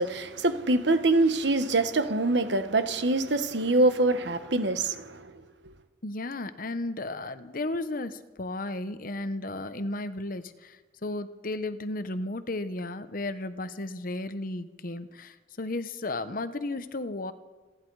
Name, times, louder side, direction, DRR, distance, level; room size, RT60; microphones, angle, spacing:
voice 1, 0.0-5.2, right 2 dB, 70° right, 1.3 m, -24 dB
voice 2, 6.0-17.3, left 2 dB, 45° left, 1.0 m, -34 dB
27.5 x 11.0 x 4.8 m
head